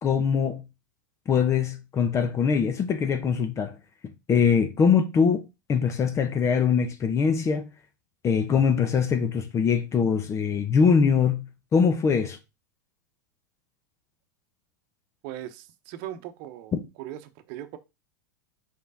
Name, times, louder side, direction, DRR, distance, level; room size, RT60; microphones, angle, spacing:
voice 1, 0.0-0.6 1.3-3.7 4.0-7.7 8.2-11.4 11.7-12.4, left 6 dB, 30° left, 0.9 m, -23 dB
voice 2, 15.2-17.8, right 12 dB, 55° right, 0.9 m, -39 dB
5.2 x 4.6 x 4.0 m
hypercardioid pair, 95°, 10 cm